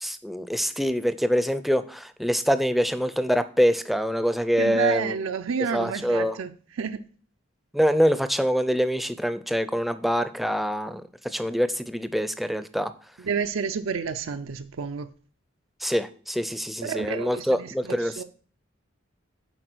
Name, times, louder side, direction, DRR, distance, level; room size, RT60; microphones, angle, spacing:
voice 1, 0.0-5.1 5.7-6.4 7.7-12.9 15.8-18.2, equal, ahead, 0.4 m, -25 dB
voice 2, 4.6-7.0 13.2-15.1 16.8-18.2, right 6 dB, 90° right, 0.5 m, -30 dB
8.0 x 4.7 x 6.1 m
head